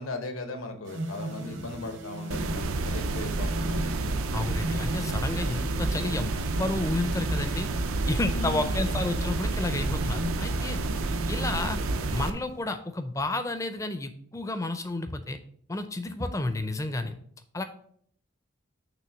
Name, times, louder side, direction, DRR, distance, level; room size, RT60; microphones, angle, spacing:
voice 1, 0.0-4.0 8.3-8.7, left 2 dB, 80° left, 6 dB, 0.9 m, -38 dB
sound 1, 0.9-12.7, right 1 dB, 60° right, 0.9 m, -39 dB
sound 2, 2.3-12.3, right 2 dB, 80° right, 0.5 m, -29 dB
voice 2, 4.3-6.3 6.6-7.7 8.1-10.8 11.3-11.8 12.1-15.4 15.7-17.2 17.5-17.6, left 2 dB, 15° left, 9 dB, 0.4 m, -31 dB
6.0 x 3.4 x 5.8 m, 0.63 s
head